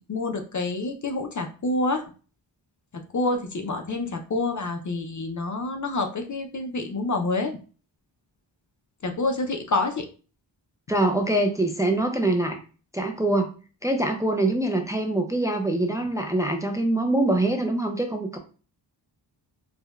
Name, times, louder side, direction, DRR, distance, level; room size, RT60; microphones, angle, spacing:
voice 1, 0.1-2.0 3.1-7.6 9.0-10.0, left 2 dB, 40° left, 4 dB, 0.5 m, -27 dB
voice 2, 10.9-12.6 12.9-13.5 13.8-18.4, right 2 dB, 5° right, 3 dB, 0.5 m, -24 dB
4.8 x 2.2 x 2.3 m, 0.37 s
wide cardioid pair, 75°, 45 cm